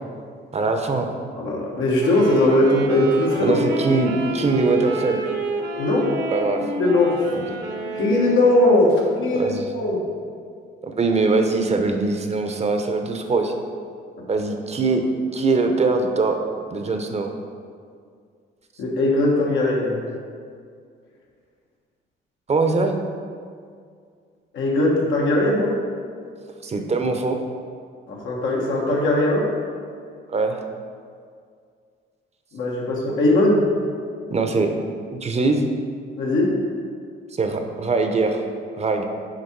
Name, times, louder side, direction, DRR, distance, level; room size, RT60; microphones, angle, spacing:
voice 1, 0.5-1.1 3.4-5.2 6.3-6.6 7.3-7.6 9.3-9.7 10.8-13.6 14.3-15.1 15.3-16.4 16.7-17.3 22.5-23.0 26.6-27.4 30.3-30.6 34.3-34.7 35.1-35.7 37.3-38.4 38.8-39.0, right 3 dB, 35° right, 5 dB, 0.7 m, -22 dB
voice 2, 1.4-3.6 5.8-6.1 6.7-7.3 7.9-10.0 18.8-20.0 24.5-25.7 28.1-29.4 32.5-33.6 36.2-36.5, left 1 dB, 80° left, -3 dB, 1.5 m, -19 dB
Wind instrument woodwind instrument, 2.0-8.8, right 3 dB, 60° right, 0.9 m, -29 dB
6.6 x 4.8 x 4.6 m, 2.2 s
cardioid pair, 90°, 20 cm